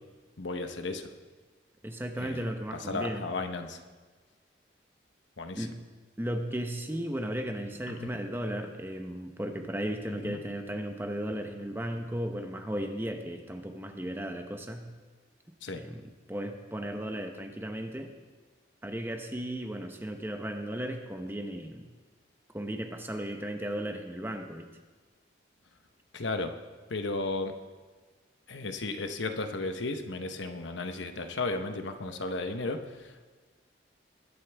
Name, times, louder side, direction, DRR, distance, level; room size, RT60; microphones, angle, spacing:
voice 1, 0.4-1.1 2.2-3.8 5.4-5.7 7.9-8.1 10.1-10.4 15.6-15.8 26.1-26.5 26.9-27.5 28.5-33.2, left 3 dB, 75° left, 7 dB, 1.0 m, -34 dB
voice 2, 1.8-3.3 5.5-5.7 6.2-14.9 15.5-16.0 16.3-18.1 18.8-21.8 22.5-24.7, right 1 dB, 10° right, 5 dB, 0.8 m, -35 dB
20.5 x 11.5 x 3.5 m, 1.4 s
head